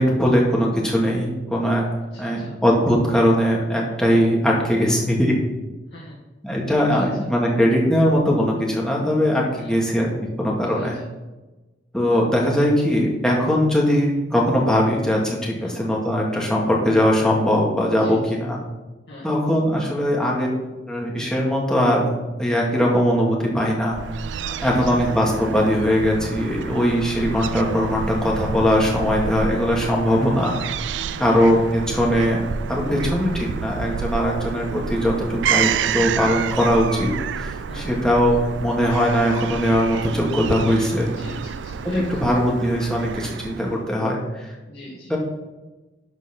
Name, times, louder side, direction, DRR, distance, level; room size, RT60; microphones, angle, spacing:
voice 1, 0.0-1.8 2.2-5.4 6.4-10.1 10.4-11.0 11.9-18.6 19.2-20.5 20.9-24.0 24.6-30.5 30.9-32.4 32.7-37.1 37.4-41.1 41.8-44.2 45.1-45.2, equal, 5° left, -3 dB, 1.9 m, -20 dB
voice 2, 2.1-2.5 4.8-5.1 5.9-6.1 6.9-7.0 9.5-10.0 10.8-10.9 15.6-15.9 18.0-18.2 19.1-19.3 24.4-24.7 31.1-31.5 37.7-38.1 41.1-42.4 44.7-45.1, left 1 dB, 65° left, -6 dB, 2.1 m, -41 dB
Fowl / Gull seagull, 23.9-43.8, right 7 dB, 75° right, 0.4 m, -29 dB
11.5 x 4.5 x 5.9 m, 1.1 s
head